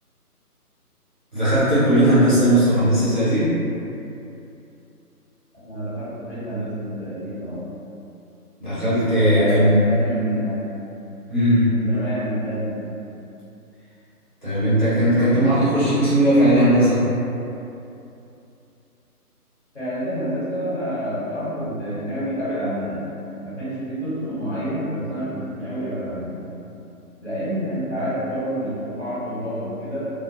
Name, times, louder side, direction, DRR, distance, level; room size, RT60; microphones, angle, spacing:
voice 1, 1.3-3.6 8.6-9.9 11.3-11.8 14.4-17.1, equal, 35° right, -13 dB, 0.5 m, -17 dB
voice 2, 5.5-7.6 9.3-10.7 11.6-12.9 19.7-23.1 23.4-26.5 27.2-30.1, equal, 45° left, -13 dB, 1.3 m, -28 dB
2.3 x 2.1 x 2.7 m, 2.7 s
figure-of-eight pair, 150°, 47 cm